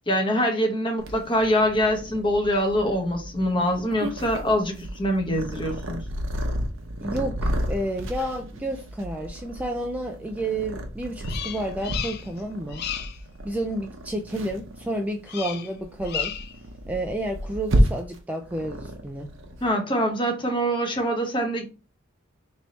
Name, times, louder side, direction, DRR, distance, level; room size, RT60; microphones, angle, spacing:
voice 1, 0.1-6.0 19.6-21.7, equal, 25° left, 3 dB, 0.9 m, -24 dB
Purr, 1.0-19.7, equal, 70° right, 0.8 m, -31 dB
voice 2, 7.0-12.9 13.4-16.3 16.9-19.3, right 1 dB, 10° right, 3 dB, 0.3 m, -30 dB
Bird vocalization bird call bird song, 11.2-12.4 12.7-13.2 15.3-15.7 16.0-16.6, left 9 dB, 55° left, 0.4 m, -33 dB
3.4 x 2.7 x 4.0 m, 0.33 s
head